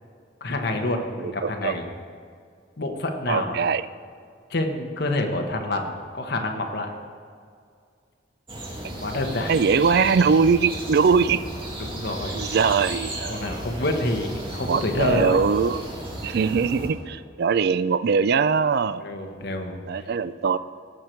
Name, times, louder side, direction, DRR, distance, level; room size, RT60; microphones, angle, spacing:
voice 1, 0.4-1.9 2.8-3.6 4.5-6.9 9.0-9.5 11.8-12.3 13.3-15.4 19.0-20.1, left 1 dB, 60° left, 4 dB, 1.2 m, -27 dB
voice 2, 1.2-1.7 3.3-3.8 9.5-11.4 12.3-13.6 14.7-15.8 16.2-19.0 19.9-20.6, right 5 dB, 60° right, 14 dB, 0.4 m, -21 dB
sound 1, 8.5-16.9, right 1 dB, 30° right, 2.2 m, -34 dB
17.5 x 6.7 x 4.5 m, 2.2 s
head